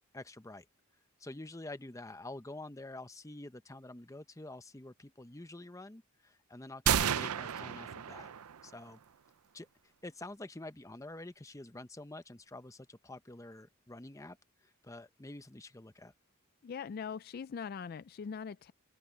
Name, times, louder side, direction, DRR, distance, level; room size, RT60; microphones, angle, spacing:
voice 1, 0.1-0.7 1.2-8.3 8.6-9.0 9.5-16.1, left 2 dB, 15° left, 0.7 m, -48 dB
sound 1, 6.9-8.7, right 8 dB, 90° right, 0.6 m, -32 dB
voice 2, 16.6-18.7, left 6 dB, 45° left, 0.3 m, -41 dB
open air
head